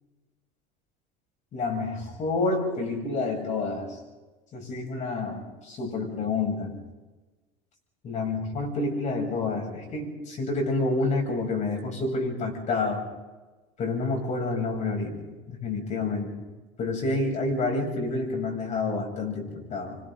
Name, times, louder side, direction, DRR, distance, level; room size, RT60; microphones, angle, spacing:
voice 1, 1.5-4.0 4.5-6.8 8.0-13.1 13.8-15.2 15.5-16.3 16.8-20.0, left 3 dB, 45° left, 1 dB, 7.5 m, -28 dB
26.0 x 26.0 x 3.9 m, 1.2 s
supercardioid pair, 120°, 17 cm